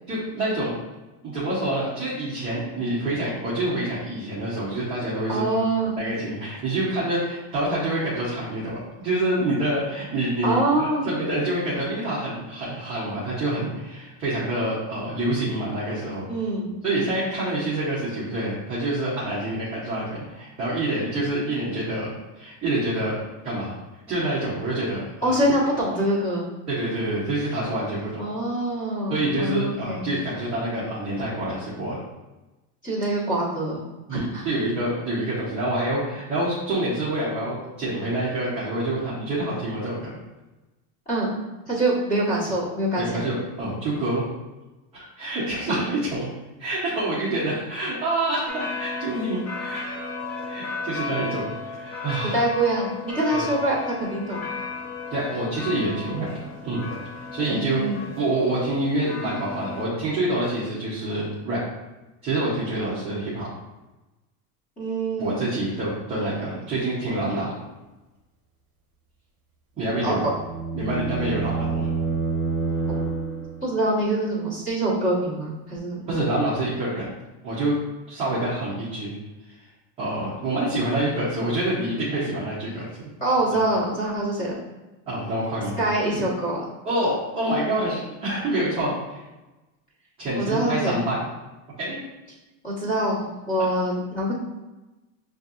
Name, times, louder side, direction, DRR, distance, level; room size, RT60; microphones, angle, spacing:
voice 1, 0.1-0.8 1.2-5.4 6.0-16.3 16.8-23.2 23.4-23.7 24.1-25.3 26.7-28.2 29.1-32.0 34.1-40.1 43.0-44.2 44.9-46.3 46.6-49.9 50.5-52.4 53.3-53.4 55.1-56.3 56.6-56.9 57.3-57.8 58.2-61.6 62.2-63.5 65.2-67.5 69.8-70.3 70.7-71.9 76.1-77.1 77.4-77.8 78.1-79.1 79.5-79.6 80.0-83.1 85.1-85.8 86.8-89.2 90.2-91.2 91.8-92.0, right 1 dB, 15° right, -10 dB, 0.3 m, -27 dB
voice 2, 5.3-5.9 10.4-11.1 16.3-17.1 25.2-26.5 28.2-30.1 32.8-33.8 34.1-34.5 41.1-41.3 41.6-43.2 45.7-45.8 52.2-54.5 57.5-58.0 64.8-65.4 70.0-70.2 73.6-76.0 83.2-84.6 85.8-86.6 90.4-91.0 92.6-94.3, right 1 dB, 15° left, -7 dB, 1.1 m, -25 dB
sound 1, 48.5-59.9, left 4 dB, 40° left, 0.7 m, -34 dB
sound 2, 69.9-73.8, right 5 dB, 35° right, 1.0 m, -28 dB
6.5 x 2.7 x 2.4 m, 1.1 s
cardioid pair, 175°, 48 cm